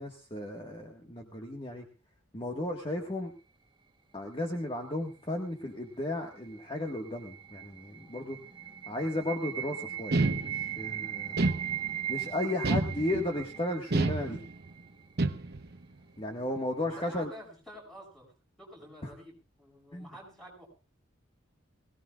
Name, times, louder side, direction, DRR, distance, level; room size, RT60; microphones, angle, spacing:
voice 1, 0.0-1.8 2.3-3.3 4.1-8.4 8.9-11.5 12.1-14.4 16.2-17.3 19.0-19.1 19.9-20.1, left 1 dB, 25° left, 2 dB, 1.6 m, -34 dB
sound 1, 6.1-15.1, right 11 dB, 25° right, 1.1 m, -39 dB
sound 2, 10.1-10.9 11.4-12.1 12.6-13.4 13.9-14.7 15.2-15.8, right 2 dB, 55° right, 0.9 m, -29 dB
voice 2, 16.8-20.7, equal, ahead, -1 dB, 6.3 m, -49 dB
22.0 x 17.5 x 2.4 m, 0.32 s
head